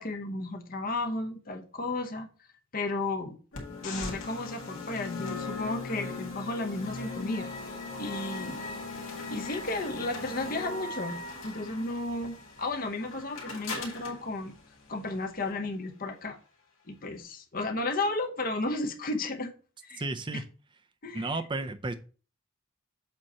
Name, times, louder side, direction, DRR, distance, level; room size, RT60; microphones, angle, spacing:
voice 1, 0.0-2.3 2.7-3.4 3.7-8.6 9.3-11.2 11.4-14.5 14.9-16.4 16.9-19.5 19.8-20.0 20.3-20.4 21.0-21.4, left 2 dB, 40° left, 0.8 m, -33 dB
sound 1, 3.5-15.5, left 3 dB, 75° left, 1.9 m, -39 dB
voice 2, 19.9-20.4 21.1-21.9, right 2 dB, 20° right, 0.5 m, -33 dB
7.6 x 2.9 x 5.4 m
head